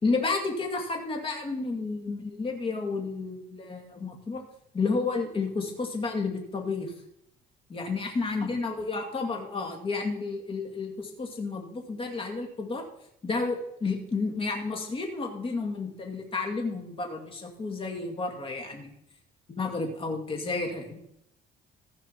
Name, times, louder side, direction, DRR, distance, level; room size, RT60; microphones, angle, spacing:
voice 1, 0.0-4.4 4.7-6.9 7.7-12.9 13.2-18.9 19.5-21.0, left 3 dB, 35° left, 3 dB, 2.4 m, -31 dB
15.0 x 5.3 x 5.9 m, 0.73 s
cardioid pair, 110°, 17 cm